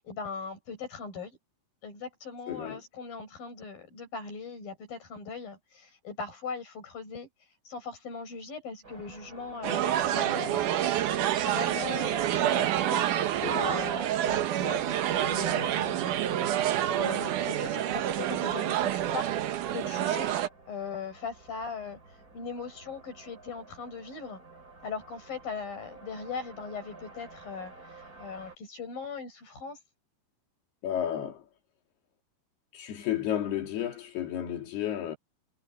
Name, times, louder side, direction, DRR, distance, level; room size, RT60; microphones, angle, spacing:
voice 1, 0.0-1.4 1.8-7.3 7.6-13.1 13.5-16.2 16.9-20.3 20.7-22.0 22.3-24.4 24.8-29.8, left 5 dB, 65° left, 9.5 m, -40 dB
voice 2, 2.5-2.8 13.4-13.8 30.8-31.4 32.7-35.2, left 11 dB, 90° left, 4.7 m, -32 dB
sound 1, 8.8-28.6, right 3 dB, 25° right, 4.5 m, -52 dB
sound 2, 9.6-20.5, right 11 dB, 65° right, 2.4 m, -28 dB
omnidirectional pair, 4.4 m